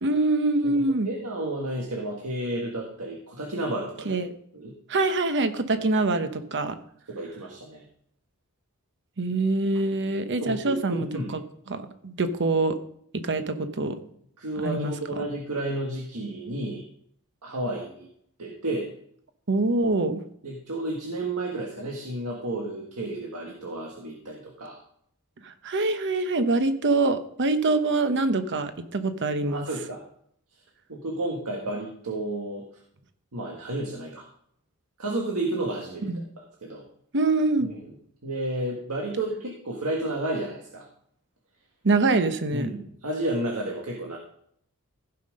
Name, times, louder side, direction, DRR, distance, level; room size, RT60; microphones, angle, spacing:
voice 1, 0.0-1.1 4.1-4.3 4.9-6.8 9.2-11.4 11.7-12.7 13.2-14.0 14.6-14.9 19.5-20.2 25.4-29.7 36.0-36.2 37.1-37.7 41.8-42.7, right 2 dB, 55° right, 9 dB, 0.9 m, -24 dB
voice 2, 1.0-4.1 4.5-4.7 5.7-5.9 7.1-7.8 10.4-11.3 14.4-16.8 17.4-18.1 18.4-18.9 20.4-24.8 29.5-30.0 30.9-32.6 33.3-34.3 35.0-36.9 37.6-37.8 38.2-40.9 42.5-44.2, right 1 dB, 85° right, -1 dB, 1.7 m, -31 dB
15.5 x 5.8 x 5.2 m, 0.67 s
head